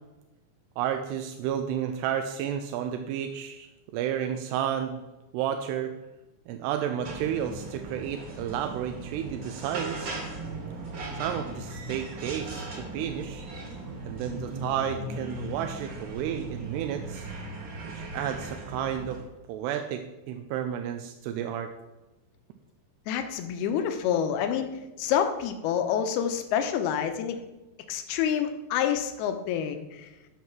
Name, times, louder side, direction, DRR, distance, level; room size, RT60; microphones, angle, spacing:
voice 1, 0.8-5.0 5.3-5.9 6.5-10.1 11.2-13.5 14.1-17.3 18.0-19.2 19.5-21.7, right 9 dB, 85° right, 6 dB, 2.8 m, -31 dB
sound 1, 7.0-19.2, right 2 dB, 45° right, 1.7 m, -38 dB
voice 2, 23.1-27.4 27.9-30.1, left 8 dB, 80° left, 7 dB, 2.7 m, -28 dB
13.5 x 4.7 x 5.9 m, 1.0 s
omnidirectional pair, 4.8 m